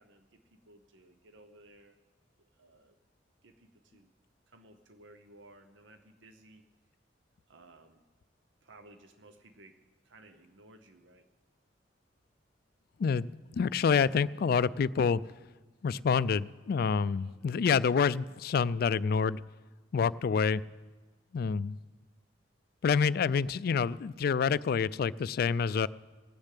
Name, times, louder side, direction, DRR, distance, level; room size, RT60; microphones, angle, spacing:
voice 1, 0.0-2.0 2.4-3.0 3.4-4.1 4.5-6.6 7.5-8.0 8.6-11.2 17.1-17.6, right 2 dB, 80° right, 8 dB, 0.8 m, -58 dB
voice 2, 13.5-15.2 15.8-19.4 19.9-20.6 21.3-21.8 22.8-25.9, left 6 dB, 55° left, 19 dB, 0.3 m, -27 dB
19.0 x 6.6 x 8.3 m, 1.3 s
head